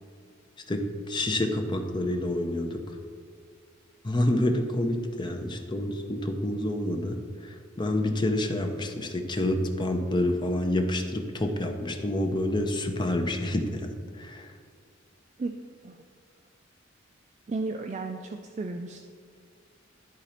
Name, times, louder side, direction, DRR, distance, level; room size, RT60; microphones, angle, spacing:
voice 1, 0.7-2.8 4.0-13.9 14.2-14.5, left 1 dB, 25° left, 4 dB, 0.7 m, -28 dB
voice 2, 17.5-19.0, right 3 dB, 35° right, 5 dB, 0.3 m, -33 dB
11.5 x 4.0 x 4.3 m, 2.1 s
head